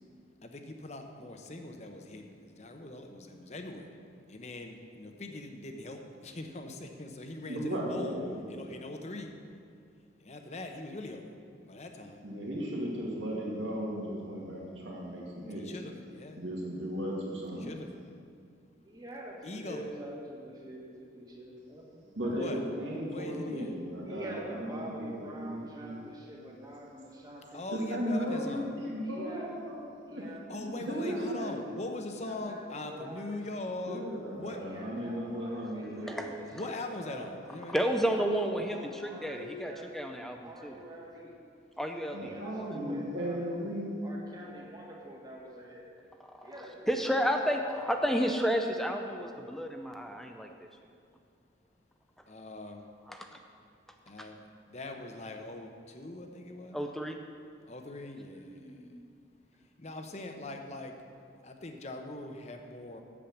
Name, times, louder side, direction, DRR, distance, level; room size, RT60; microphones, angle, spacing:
voice 1, 0.4-3.9 4.3-8.2 8.5-9.3 10.2-11.4 11.6-12.3 15.6-16.4 17.5-17.9 19.4-19.9 22.3-22.6 23.1-23.8 27.5-28.7 30.5-34.6 36.5-37.8 52.3-52.9 54.1-54.4 54.7-56.9 57.7-58.9 59.8-60.9 61.4-63.0, left 2 dB, 35° left, 4 dB, 0.8 m, -41 dB
voice 2, 7.5-8.7 12.2-15.7 16.4-17.7 22.1-26.0 27.7-29.8 30.1-30.2 30.9-31.8 33.9-36.3 42.1-43.9, equal, 85° right, -3 dB, 2.3 m, -36 dB
voice 3, 18.8-22.5 24.0-27.7 29.0-29.5 30.1-30.4 30.9-31.5 32.1-33.4 34.5-36.7 37.0-37.3 38.1-38.4 38.7-39.9 40.4-41.3 42.1-43.5 44.0-45.9 46.4-47.3 47.7-48.4 58.3-59.0, equal, 20° right, -2 dB, 1.6 m, -46 dB
voice 4, 37.7-40.8 41.8-42.3 46.2-46.5 46.9-50.7 53.1-53.4 54.2-54.3 56.7-57.2, equal, ahead, 4 dB, 0.5 m, -31 dB
8.6 x 7.4 x 7.2 m, 2.3 s
head